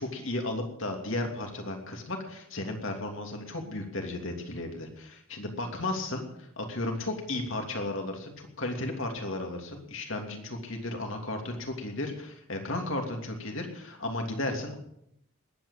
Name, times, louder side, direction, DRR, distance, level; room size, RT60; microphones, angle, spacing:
voice 1, 0.0-14.8, left 2 dB, 60° left, 3 dB, 3.0 m, -34 dB
20.0 x 9.3 x 7.3 m, 0.75 s
head